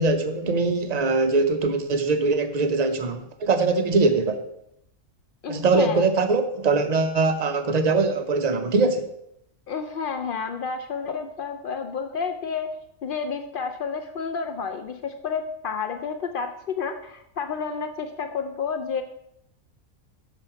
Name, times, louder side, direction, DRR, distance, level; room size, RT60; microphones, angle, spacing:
voice 1, 0.0-4.4 5.5-9.1, right 3 dB, 90° right, 7 dB, 0.3 m, -22 dB
voice 2, 5.4-6.0 9.7-12.7 13.0-19.0, left 5 dB, 80° left, 7 dB, 0.4 m, -30 dB
7.1 x 5.2 x 5.6 m, 0.78 s
omnidirectional pair, 1.5 m